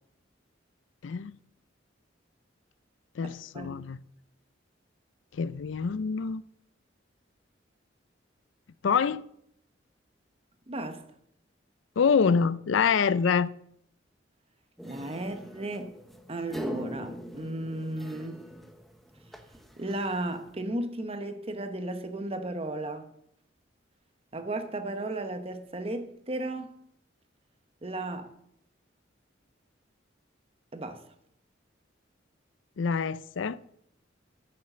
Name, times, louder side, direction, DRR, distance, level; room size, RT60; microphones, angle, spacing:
voice 1, 1.0-1.4 3.2-4.0 5.3-6.4 8.8-9.2 12.0-13.5 32.8-33.6, left 6 dB, 80° left, 0.4 m, -26 dB
voice 2, 3.2-3.7 10.7-11.0 14.9-15.9 16.3-18.4 19.8-23.1 24.3-26.8 27.8-28.3 30.7-31.0, right 1 dB, 30° right, 1.0 m, -34 dB
sound 1, 14.8-20.5, equal, ahead, 0.9 m, -42 dB
9.8 x 7.6 x 6.7 m
head